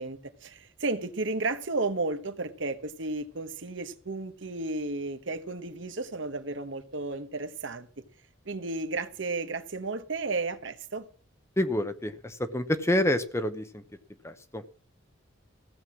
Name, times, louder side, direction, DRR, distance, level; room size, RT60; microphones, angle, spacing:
voice 1, 0.0-7.9 8.4-11.0, right 3 dB, 65° right, 9 dB, 1.2 m, -33 dB
voice 2, 11.6-13.8 14.2-14.6, left 1 dB, 15° left, 10 dB, 0.8 m, -28 dB
15.5 x 7.7 x 6.2 m, 0.41 s
head